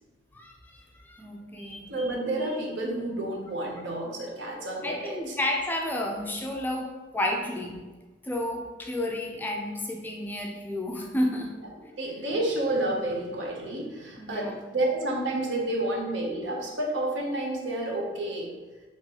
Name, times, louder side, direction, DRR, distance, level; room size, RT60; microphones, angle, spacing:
voice 1, 0.3-1.9 4.8-7.8 8.2-11.5 14.2-14.5, left 1 dB, 10° left, 1 dB, 0.3 m, -31 dB
voice 2, 1.6-5.4 11.8-18.5, right 1 dB, 80° right, -1 dB, 0.8 m, -30 dB
3.8 x 3.0 x 2.9 m, 1.3 s
head